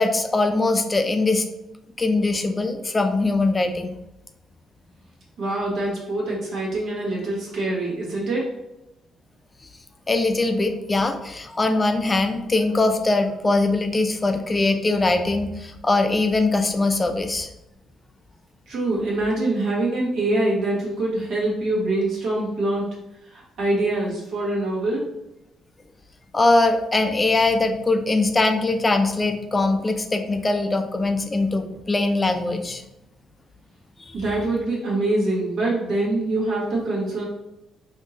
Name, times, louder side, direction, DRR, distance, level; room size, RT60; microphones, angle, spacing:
voice 1, 0.0-1.4 2.0-4.0 10.1-17.5 26.3-32.8 34.1-34.2, left 2 dB, 25° left, 6 dB, 0.4 m, -21 dB
voice 2, 5.4-8.5 18.7-22.9 23.3-25.0 34.1-37.3, right 2 dB, 70° right, -4 dB, 1.4 m, -24 dB
3.6 x 2.7 x 2.7 m, 0.89 s
cardioid pair, 90°, 0 cm